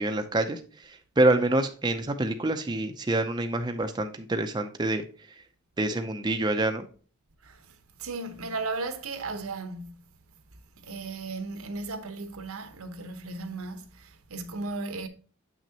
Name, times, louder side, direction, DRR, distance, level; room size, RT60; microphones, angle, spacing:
voice 1, 0.0-5.0 5.8-6.9, right 2 dB, 20° right, 0.5 m, -26 dB
voice 2, 8.0-10.0 10.8-15.1, right 3 dB, 75° right, 0.9 m, -36 dB
7.7 x 6.0 x 2.8 m
head